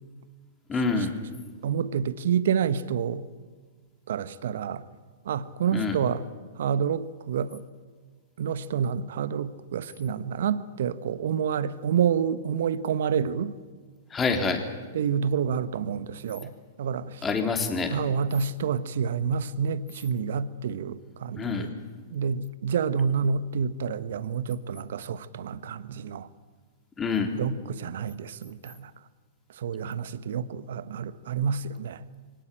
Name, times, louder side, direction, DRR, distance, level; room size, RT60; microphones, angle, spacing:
voice 1, 0.7-1.1 5.7-6.0 14.1-14.6 17.2-18.0 21.4-21.7 27.0-27.3, left 4 dB, 20° left, 3.5 m, -26 dB
voice 2, 1.6-3.2 4.1-4.8 5.2-6.2 6.6-7.6 8.4-13.5 14.9-16.5 16.8-17.3 17.9-21.7 22.1-26.3 27.4-28.9 29.6-32.0, right 7 dB, 65° right, 1.2 m, -28 dB
23.5 x 18.5 x 9.0 m
hypercardioid pair, 110°, 0 cm